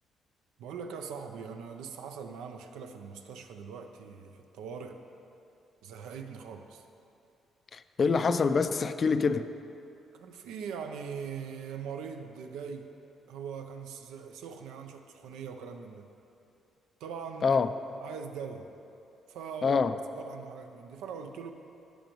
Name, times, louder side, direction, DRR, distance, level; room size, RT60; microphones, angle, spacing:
voice 1, 0.6-5.0 5.8-6.9 10.1-12.9 13.3-16.1 17.0-17.6 18.0-18.7 19.3-19.8 20.2-21.5, right 6 dB, 85° right, 6 dB, 0.5 m, -41 dB
voice 2, 7.7-9.5 17.4-17.7 19.6-20.0, left 5 dB, 45° left, 11 dB, 0.3 m, -26 dB
13.5 x 5.1 x 3.0 m, 2.8 s
cardioid pair, 80°, 0 cm